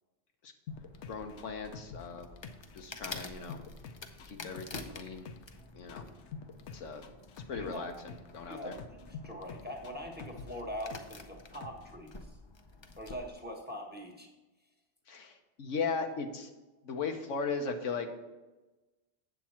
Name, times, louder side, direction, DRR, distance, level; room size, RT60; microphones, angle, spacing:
sound 1, 0.7-2.8 3.1-5.6 5.9-8.4 8.7-11.2 11.5-11.9, left 5 dB, 70° left, 1.0 m, -46 dB
sound 2, 0.7-13.3, left 3 dB, 35° left, 0.5 m, -49 dB
voice 1, 1.1-2.3 2.7-3.6 4.3-5.3 5.7-6.1 6.7-7.0 7.5-8.7 15.1-16.5 16.8-18.1, left 5 dB, 90° left, 5 dB, 1.3 m, -37 dB
voice 2, 7.5-7.9 8.4-12.4 13.0-14.3, equal, 10° right, 2 dB, 1.1 m, -43 dB
8.2 x 7.3 x 4.3 m, 1.1 s
omnidirectional pair, 1.2 m